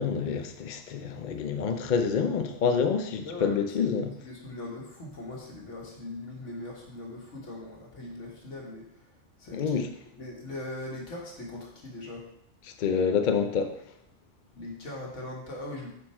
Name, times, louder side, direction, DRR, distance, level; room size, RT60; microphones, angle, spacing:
voice 1, 0.0-4.1 9.5-9.9 12.6-13.7, left 6 dB, 50° left, 6 dB, 0.6 m, -27 dB
voice 2, 3.2-3.6 4.2-8.8 9.4-9.9 10.2-12.2 14.5-15.9, left 2 dB, 75° left, -2 dB, 1.9 m, -40 dB
6.3 x 4.6 x 4.3 m, 0.73 s
omnidirectional pair, 1.2 m